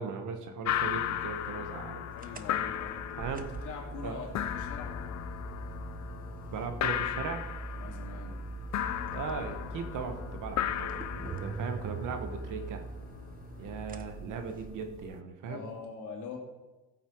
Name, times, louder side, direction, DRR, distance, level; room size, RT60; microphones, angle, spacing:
voice 1, 0.0-2.1 3.2-3.7 4.0-4.2 6.5-7.4 9.1-12.8 13.6-15.6, right 5 dB, 85° right, 6 dB, 1.5 m, -38 dB
sound 1, 0.6-15.2, left 11 dB, 65° left, 0.6 m, -36 dB
voice 2, 2.1-3.0 3.6-5.0 7.8-8.4 15.5-16.4, left 5 dB, 80° left, 0 dB, 2.8 m, -43 dB
sound 2, 2.2-15.0, right 3 dB, 30° right, 0.9 m, -42 dB
15.0 x 8.2 x 4.7 m, 1.1 s
cardioid pair, 90°, 30 cm